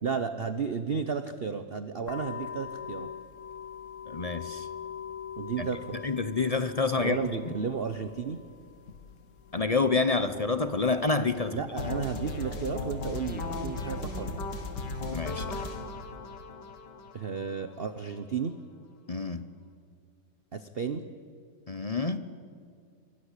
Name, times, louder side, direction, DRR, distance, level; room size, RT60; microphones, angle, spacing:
voice 1, 0.0-3.1 5.4-6.0 6.9-8.4 11.5-14.4 17.1-18.6 20.5-21.0, right 6 dB, 40° right, 10 dB, 0.9 m, -33 dB
sound 1, 2.1-12.7, left 8 dB, 50° left, 1.2 m, -44 dB
voice 2, 4.1-4.7 5.6-5.7 5.9-7.2 7.5-7.6 9.5-11.6 11.9-12.0 15.1-15.7 19.1-19.5 21.7-22.2, left 4 dB, 30° left, 11 dB, 0.7 m, -28 dB
sound 2, 11.8-17.7, left 3 dB, 80° left, 2.6 m, -36 dB
26.0 x 23.5 x 8.3 m, 2.2 s
omnidirectional pair, 1.9 m